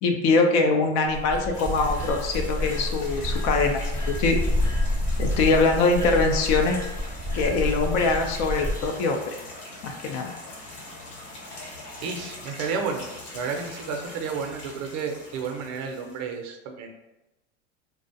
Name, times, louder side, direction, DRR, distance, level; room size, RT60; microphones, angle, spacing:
voice 1, 0.0-4.4 5.2-6.8 7.3-9.2 9.8-10.3, left 3 dB, 45° left, 3 dB, 0.5 m, -23 dB
sound 1, 1.1-8.9, left 1 dB, 10° left, 0.8 m, -28 dB
sound 2, 1.5-16.3, left 2 dB, 85° left, 1.0 m, -42 dB
voice 2, 12.0-13.0 13.3-16.9, right 5 dB, 45° right, 4 dB, 0.6 m, -31 dB
2.4 x 2.0 x 2.6 m, 0.99 s
supercardioid pair, 105°, 37 cm